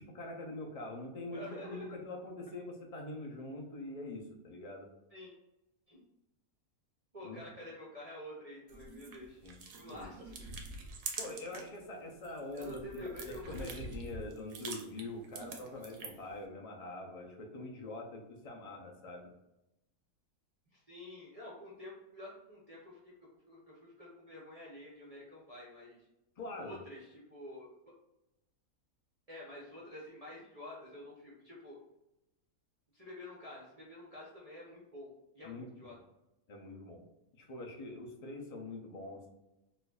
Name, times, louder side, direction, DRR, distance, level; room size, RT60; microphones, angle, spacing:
voice 1, 0.0-4.9 7.2-7.4 9.4-9.6 9.9-10.1 11.2-19.3 26.4-26.8 35.4-35.9 36.5-37.0 37.3-39.3, left 2 dB, 50° left, 0 dB, 0.4 m, -44 dB
voice 2, 1.3-2.0 5.1-5.3 5.9-6.0 7.1-9.4 9.7-10.3 12.5-13.8 20.7-23.1 23.5-26.0 26.6-27.7 29.3-31.8 32.9-35.9, left 1 dB, 35° right, -5 dB, 0.7 m, -49 dB
sound 1, 8.7-11.8 12.1-16.3, right 4 dB, 70° right, 1.0 m, -45 dB
4.2 x 2.5 x 2.3 m, 0.92 s
omnidirectional pair, 1.6 m